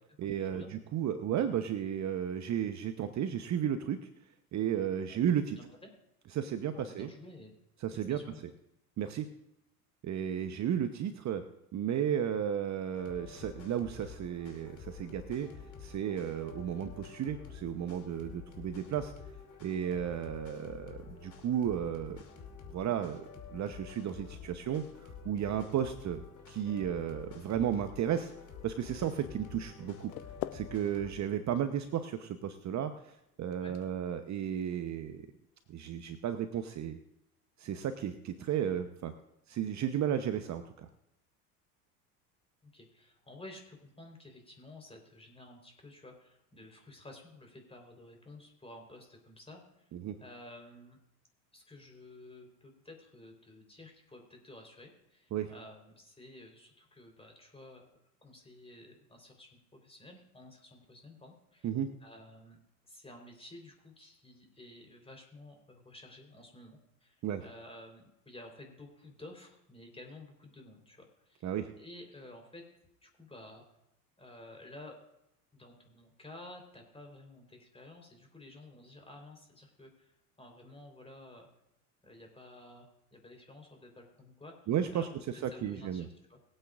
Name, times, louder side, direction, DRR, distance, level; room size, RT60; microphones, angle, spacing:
voice 1, 0.2-4.1 4.5-5.6 6.3-7.1 7.8-8.2 9.0-9.3 10.0-11.4 11.7-15.5 15.8-19.1 19.6-22.2 22.7-23.2 23.5-26.2 26.5-28.3 28.6-30.1 30.5-33.1 33.4-35.2 35.7-37.0 37.6-39.1 39.5-40.9 49.9-50.1 55.3-55.5 61.6-61.9 67.2-67.4 71.4-71.7 84.7-85.1 85.4-86.1, right 9 dB, 40° right, 8 dB, 1.0 m, -33 dB
voice 2, 6.7-7.5 7.9-8.4 33.6-33.8 42.6-49.9 50.2-51.0 51.5-57.9 58.2-61.7 62.0-62.6 62.9-71.5 71.8-72.6 73.0-73.6 74.2-75.0 75.5-81.5 82.0-84.5 84.9-85.1 85.5-86.4, left 1 dB, 15° left, 3 dB, 4.0 m, -52 dB
sound 1, 12.9-31.1, left 6 dB, 40° left, 2.9 m, -49 dB
sound 2, 29.8-35.7, left 17 dB, 70° left, 0.8 m, -48 dB
22.5 x 8.8 x 2.5 m, 0.84 s
hypercardioid pair, 75°, 45 cm